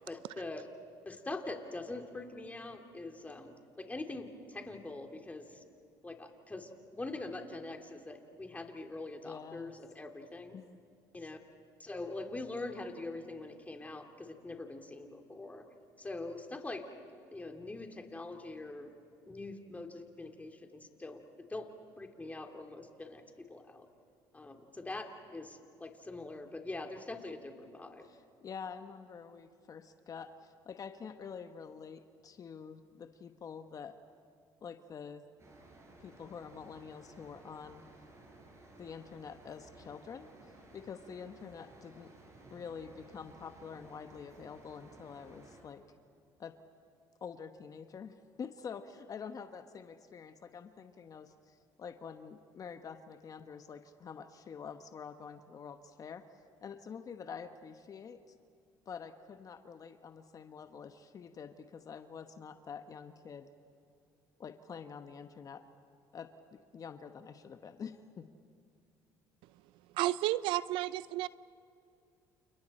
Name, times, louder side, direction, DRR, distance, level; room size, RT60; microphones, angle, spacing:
voice 1, 0.1-0.7 1.0-5.6 6.0-10.5 11.1-11.4 11.8-15.6 16.0-16.8 17.3-18.9 19.3-21.7 22.0-23.9 24.3-28.0, left 2 dB, 15° left, 4 dB, 2.9 m, -43 dB
voice 2, 9.2-9.7 10.5-10.8 28.0-33.9 34.6-35.2 36.0-37.8 38.8-40.3 40.7-42.1 42.5-45.8 46.4-46.5 47.2-56.2 56.6-58.4 58.9-63.5 64.4-65.6 66.1-68.3, left 6 dB, 40° left, 8 dB, 1.1 m, -47 dB
sound 1, 35.4-45.6, right 2 dB, 35° right, 6.8 m, -57 dB
voice 3, 69.9-71.3, right 16 dB, 75° right, 18 dB, 0.5 m, -31 dB
29.5 x 29.0 x 4.4 m, 2.5 s
supercardioid pair, 75°, 9 cm